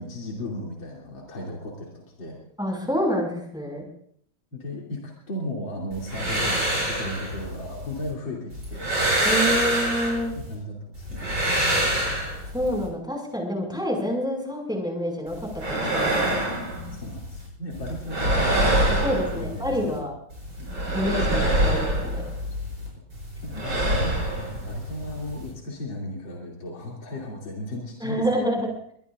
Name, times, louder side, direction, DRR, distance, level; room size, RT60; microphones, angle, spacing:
voice 1, 0.0-2.4 4.5-9.0 10.3-11.3 16.9-20.1 20.6-20.8 22.4-22.6 23.4-28.3, left 1 dB, 70° left, -3 dB, 3.6 m, -35 dB
voice 2, 2.6-3.8 9.2-10.3 12.5-15.4 15.7-16.3 19.0-20.1 20.9-22.2 28.0-28.7, equal, ahead, 1 dB, 5.8 m, -27 dB
sound 1, 5.9-8.1 8.5-10.5 10.9-12.9 15.3-17.5 17.7-20.0 20.3-22.9 23.1-25.5, right 1 dB, 65° right, 8.1 m, -26 dB
24.5 x 20.0 x 2.5 m, 0.64 s
omnidirectional pair, 2.2 m